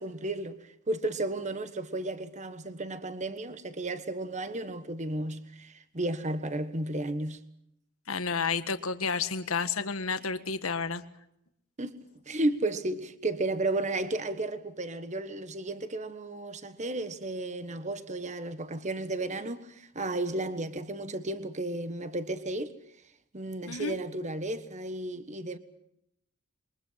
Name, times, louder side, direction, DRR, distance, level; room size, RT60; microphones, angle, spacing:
voice 1, 0.0-7.5 11.8-12.0 12.3-22.8 23.3-25.6, right 2 dB, 35° right, 1.4 m, -33 dB
voice 2, 8.1-11.0 23.7-24.0, left 5 dB, 90° left, 1.6 m, -31 dB
28.0 x 23.0 x 5.7 m
head